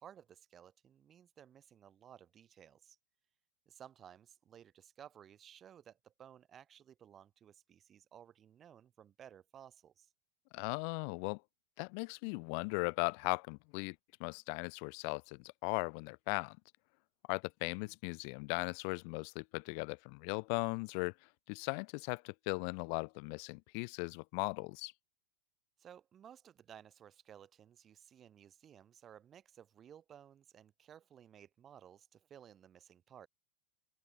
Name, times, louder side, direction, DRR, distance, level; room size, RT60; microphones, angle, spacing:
voice 1, 0.0-3.0 3.7-10.1 17.8-17.9 25.8-33.3, right 9 dB, 25° right, 6.8 m, -57 dB
voice 2, 10.5-11.4 11.8-13.9 14.2-16.6 17.3-21.1 21.5-24.9, left 40 dB or more, 45° left, 1.5 m, -38 dB
open air
figure-of-eight pair, 90°, 0 cm